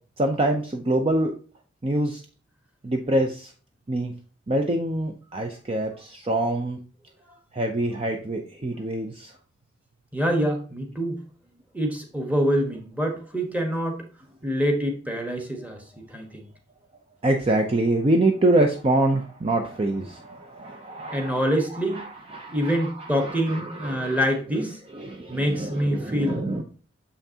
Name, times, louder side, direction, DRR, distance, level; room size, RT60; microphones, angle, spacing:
voice 1, 0.2-1.3 1.8-2.2 2.8-3.5 3.9-4.1 4.5-6.8 7.5-9.3 17.2-21.4 21.9-24.2 24.9-26.6, right 1 dB, 30° right, 4 dB, 0.5 m, -25 dB
voice 2, 10.1-11.2 11.7-14.0 14.4-16.5 21.1-22.0 22.5-24.8 25.3-26.4, equal, 10° right, 3 dB, 1.2 m, -26 dB
6.9 x 5.6 x 2.8 m, 0.39 s
head